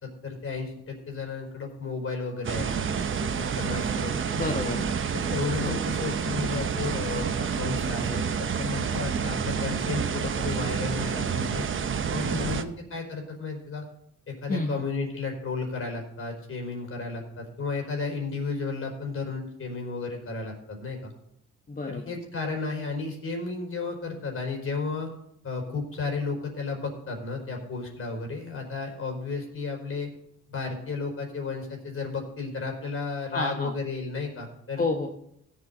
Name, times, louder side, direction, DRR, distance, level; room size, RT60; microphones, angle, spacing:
voice 1, 0.0-2.7 3.2-4.4 5.1-11.6 12.1-13.8 14.3-21.1 21.9-25.1 25.4-30.1 30.5-34.8, left 4 dB, 45° left, 2 dB, 4.5 m, -33 dB
sound 1, 2.4-12.6, right 6 dB, 40° right, 0.9 m, -29 dB
voice 2, 4.3-4.8 5.6-5.8 12.3-12.5 14.5-14.8 21.7-22.0 33.3-33.7 34.8-35.1, left 3 dB, 30° left, 3 dB, 1.2 m, -29 dB
16.5 x 7.8 x 4.0 m, 0.75 s
cardioid pair, 90°, 30 cm